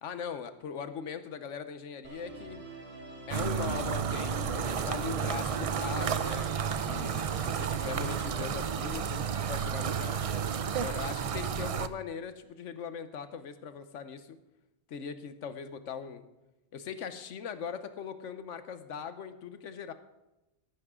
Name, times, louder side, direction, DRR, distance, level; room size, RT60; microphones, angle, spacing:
voice 1, 0.0-2.6 3.3-6.5 6.8-10.2 10.8-14.4 14.9-16.2 16.7-19.9, left 6 dB, 85° left, 10 dB, 1.2 m, -40 dB
Musical instrument, 2.0-8.4, right 2 dB, 90° right, 3.3 m, -45 dB
sound 1, 3.3-11.9, right 7 dB, 65° right, 0.3 m, -32 dB
14.0 x 11.5 x 3.7 m, 0.98 s
omnidirectional pair, 1.2 m